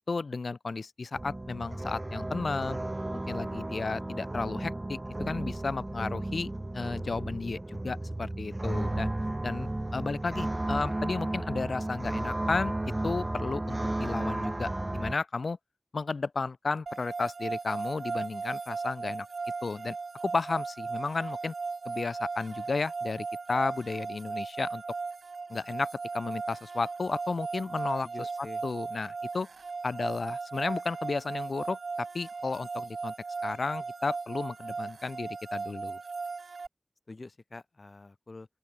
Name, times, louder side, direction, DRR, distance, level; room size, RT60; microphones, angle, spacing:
voice 1, 0.1-2.8 3.3-9.1 9.4-12.7 13.0-15.6 15.9-19.3 19.6-20.0 20.2-21.5 21.8-24.8 25.5-25.9 26.1-28.1 28.6-29.5 29.8-33.1 33.4-36.0, left 4 dB, 75° left, 1.8 m, -33 dB
sound 1, 1.1-15.2, right 1 dB, 30° right, 1.1 m, -34 dB
voice 2, 9.6-11.4 28.0-28.6 37.1-38.5, left 3 dB, 55° left, 7.0 m, -48 dB
sound 2, 16.9-36.7, right 4 dB, 90° right, 0.4 m, -37 dB
open air
wide cardioid pair, 55°, 0 cm